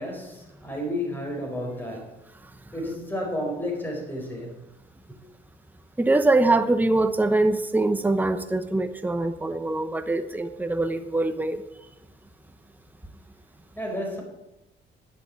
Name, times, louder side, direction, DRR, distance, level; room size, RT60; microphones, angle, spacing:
voice 1, 0.0-2.2 2.7-4.6 5.1-5.2 13.8-14.2, left 1 dB, 10° left, 1 dB, 4.3 m, -32 dB
voice 2, 6.0-11.6, right 2 dB, 10° right, 9 dB, 0.9 m, -23 dB
10.5 x 6.6 x 8.6 m, 0.93 s
cardioid pair, 90°, 20 cm